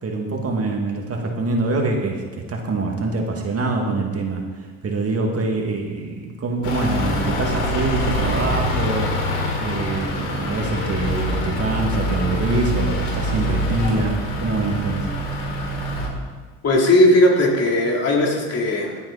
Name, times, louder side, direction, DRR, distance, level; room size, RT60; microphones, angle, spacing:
voice 1, 0.0-9.2 9.6-15.1, right 3 dB, 40° right, 1 dB, 2.3 m, -25 dB
Truck / Idling, 6.6-16.1, left 1 dB, 85° left, 3.6 m, -24 dB
voice 2, 16.6-19.0, left 1 dB, 40° left, -2 dB, 3.6 m, -17 dB
16.0 x 8.7 x 4.3 m, 1.5 s
supercardioid pair, 85°, 38 cm